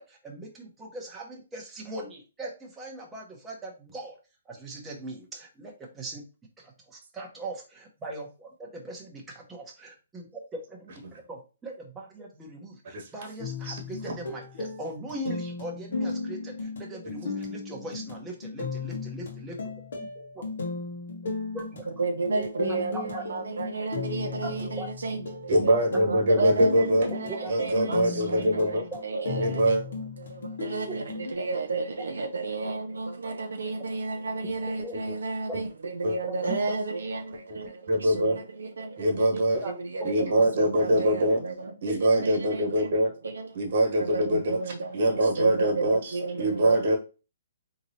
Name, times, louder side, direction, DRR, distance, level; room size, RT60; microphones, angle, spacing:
voice 1, 0.0-4.2 4.5-6.3 6.6-19.6 20.0-20.4 21.5-21.7 22.3-22.4 22.7-23.2 24.8-24.9 27.3-27.5 28.9-29.0 30.9-31.0 34.8-35.0 35.5-35.6 36.5-36.8 39.6-39.8, right 1 dB, 10° right, 0.9 m, -40 dB
sound 1, 13.4-31.3, left 4 dB, 70° left, 1.3 m, -36 dB
voice 2, 22.0-39.4 39.8-41.7 42.1-42.9 43.2-43.5 43.9-46.8, right 3 dB, 85° right, 0.6 m, -32 dB
voice 3, 25.5-27.1 27.5-28.8 29.4-29.8 36.0-36.2 37.5-37.6 37.9-38.4 39.0-39.6 40.0-41.4 41.8-43.1 43.5-44.6 44.9-47.0, right 1 dB, 55° right, 1.4 m, -23 dB
3.8 x 3.1 x 2.7 m
hypercardioid pair, 145°, 0 cm